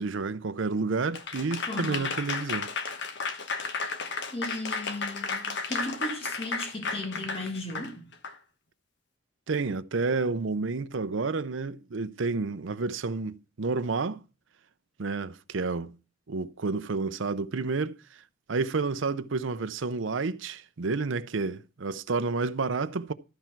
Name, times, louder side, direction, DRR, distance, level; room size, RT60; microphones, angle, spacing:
voice 1, 0.0-2.7 9.5-14.2 15.0-16.0 16.3-18.0 18.5-23.1, right 4 dB, 70° right, 0.6 m, -30 dB
Applause / Crowd, 1.1-8.4, left 4 dB, 60° left, 1.2 m, -33 dB
voice 2, 1.7-2.2 4.3-8.1, left 1 dB, 30° left, 2.3 m, -36 dB
13.5 x 4.5 x 5.9 m
head